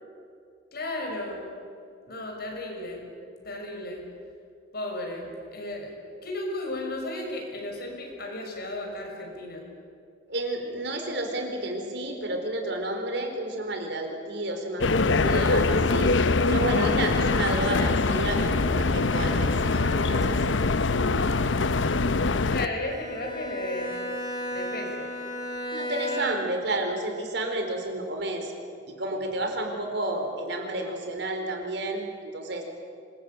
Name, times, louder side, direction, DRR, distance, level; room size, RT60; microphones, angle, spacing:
voice 1, 0.7-1.4 2.1-3.1 3.4-4.1 4.7-5.9 6.2-9.7 22.5-24.0 24.5-25.1, left 1 dB, 55° left, 1 dB, 6.0 m, -34 dB
voice 2, 10.3-16.1 16.5-20.7 25.7-28.5 28.9-32.6, right 1 dB, 65° right, 4 dB, 4.3 m, -31 dB
sound 1, 14.8-22.7, left 3 dB, 85° left, 0.8 m, -23 dB
Bowed string instrument, 22.6-26.7, equal, 25° left, 4.7 m, -34 dB
25.0 x 21.5 x 9.2 m, 2.3 s
head